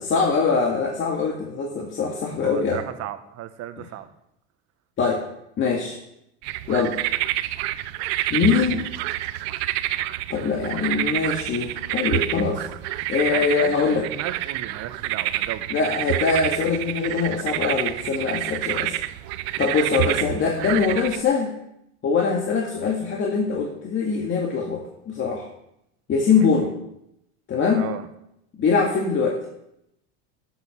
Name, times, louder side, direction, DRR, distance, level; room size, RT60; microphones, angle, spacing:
voice 1, 0.0-2.8 5.0-5.2 5.6-6.0 6.7-7.0 8.3-8.9 10.3-12.6 13.1-14.1 15.7-18.9 19.6-21.5 22.0-25.5 26.1-26.7 27.5-27.9 28.6-29.4, left 5 dB, 35° left, 1 dB, 2.0 m, -23 dB
voice 2, 2.4-4.1 8.7-8.9 13.3-15.7 26.3-26.5 27.7-28.1, right 12 dB, 45° right, 9 dB, 1.4 m, -34 dB
sound 1, 6.4-21.2, right 16 dB, 75° right, 0.8 m, -28 dB
12.5 x 8.0 x 6.3 m, 0.81 s
supercardioid pair, 125°, 33 cm